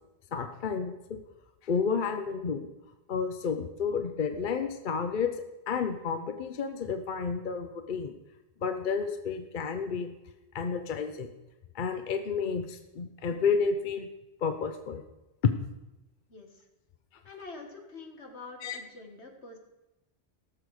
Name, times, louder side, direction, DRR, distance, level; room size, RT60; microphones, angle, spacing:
voice 1, 0.3-1.2 1.6-2.7 3.1-5.3 5.7-8.1 8.6-10.1 10.5-11.3 11.7-14.1 14.4-15.0 15.4-15.5 18.6-18.8, left 5 dB, 50° left, 7 dB, 0.9 m, -30 dB
voice 2, 16.3-16.6 17.2-19.6, left 3 dB, 80° left, 2 dB, 2.0 m, -46 dB
17.5 x 7.0 x 4.9 m, 0.99 s
omnidirectional pair, 1.1 m